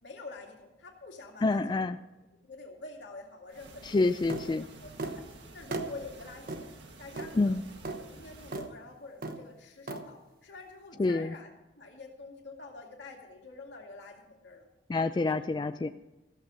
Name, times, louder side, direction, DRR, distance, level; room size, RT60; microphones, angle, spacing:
voice 1, 0.0-1.9 2.4-4.3 4.6-5.3 5.5-6.7 7.0-7.6 8.0-14.7 15.2-15.6, left 3 dB, 75° left, 1 dB, 2.3 m, -47 dB
voice 2, 1.4-2.0 3.8-4.6 7.3-7.6 11.0-11.3 14.9-15.9, left 3 dB, 25° left, 9 dB, 0.3 m, -27 dB
sound 1, 3.5-8.7, right 2 dB, 80° right, 1.6 m, -51 dB
sound 2, 4.3-4.5 5.0-5.2 5.7-5.9 6.5-6.6 7.2-7.3 7.8-8.0 8.5-8.7 9.2-9.4 9.9-10.0, right 3 dB, 55° right, 1.0 m, -35 dB
14.5 x 7.2 x 6.2 m, 1.0 s
head